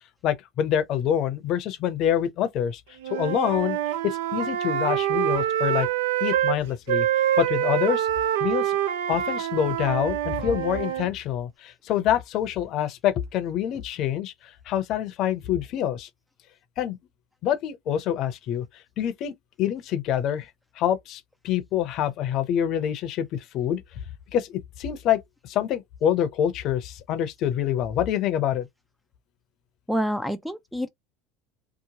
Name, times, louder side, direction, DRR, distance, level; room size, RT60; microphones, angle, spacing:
voice 1, 0.2-2.8 3.1-3.8 4.0-5.9 6.2-7.1 7.4-8.1 8.4-8.8 9.1-16.1 16.8-17.0 17.4-18.7 19.0-19.3 19.6-20.5 20.8-23.8 24.3-28.7, left 10 dB, 55° left, 0.6 m, -26 dB
Wind instrument woodwind instrument, 3.0-6.6 6.9-11.1, right 11 dB, 85° right, 0.4 m, -25 dB
voice 2, 29.9-30.9, equal, ahead, 0.4 m, -27 dB
2.9 x 2.0 x 2.7 m
supercardioid pair, 105°, 0 cm